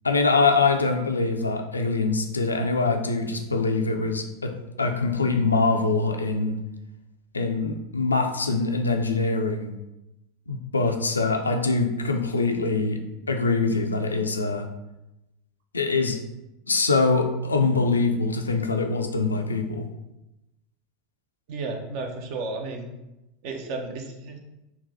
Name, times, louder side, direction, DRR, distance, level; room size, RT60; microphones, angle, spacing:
voice 1, 0.0-6.6 7.3-9.7 10.5-13.0 13.3-14.7 15.7-16.2 16.7-19.9, left 3 dB, 80° left, 5 dB, 0.4 m, -24 dB
voice 2, 21.5-22.9 23.4-24.4, right 3 dB, 50° right, 3 dB, 0.6 m, -33 dB
4.0 x 2.2 x 4.0 m, 0.94 s
figure-of-eight pair, 80°, 0 cm